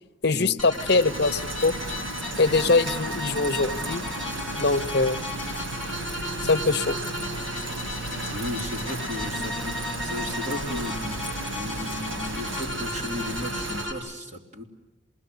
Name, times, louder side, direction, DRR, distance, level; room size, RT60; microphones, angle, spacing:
voice 1, 0.2-1.7 2.4-4.0 4.6-5.2 6.4-7.0, left 3 dB, 55° left, 11 dB, 0.9 m, -22 dB
sound 1, 0.6-13.9, left 2 dB, 5° left, 5.1 m, -35 dB
Rain, 0.7-13.9, right 1 dB, 85° right, 5.5 m, -34 dB
voice 2, 8.3-11.2 11.5-14.6, left 1 dB, 40° right, -1 dB, 3.6 m, -35 dB
28.0 x 20.5 x 9.4 m, 1.0 s
head